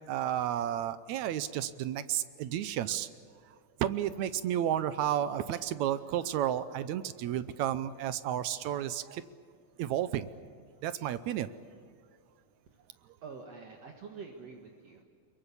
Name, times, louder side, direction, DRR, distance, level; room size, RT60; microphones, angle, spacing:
voice 1, 0.1-3.1 3.8-9.2 9.8-10.3 10.8-11.5, right 11 dB, 75° right, 14 dB, 1.9 m, -32 dB
voice 2, 13.2-15.0, right 5 dB, 60° right, 2 dB, 2.6 m, -46 dB
24.5 x 22.5 x 8.4 m, 2.2 s
omnidirectional pair, 3.6 m